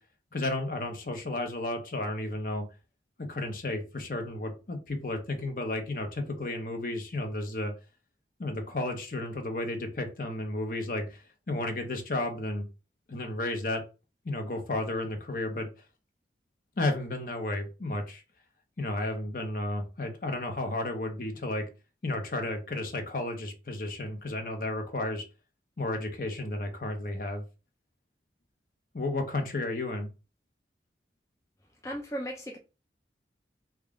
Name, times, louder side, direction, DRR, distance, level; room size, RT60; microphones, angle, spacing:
voice 1, 0.3-2.6 3.2-7.7 8.4-12.7 13.1-13.8 14.2-15.7 16.8-18.2 18.8-21.6 22.0-25.2 25.8-27.4 28.9-30.1, left 2 dB, 50° left, 0.7 m, -33 dB
voice 2, 31.8-32.6, equal, 15° left, 0.4 m, -36 dB
3.6 x 2.3 x 3.5 m
head